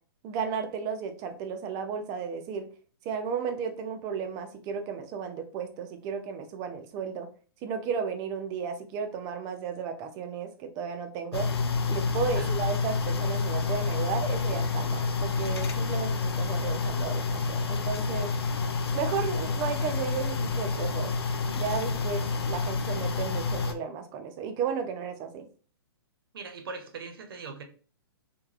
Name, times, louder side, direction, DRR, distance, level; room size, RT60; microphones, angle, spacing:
voice 1, 0.2-2.7 3.0-7.3 7.6-11.5 11.9-18.3 18.9-21.1 21.6-25.5, right 6 dB, 25° right, 6 dB, 0.4 m, -34 dB
sound 1, 11.3-23.7, left 4 dB, 85° left, 0.4 m, -29 dB
voice 2, 26.3-27.6, right 4 dB, 65° right, 6 dB, 0.7 m, -40 dB
3.2 x 2.2 x 2.3 m, 0.40 s
hypercardioid pair, 130°, 13 cm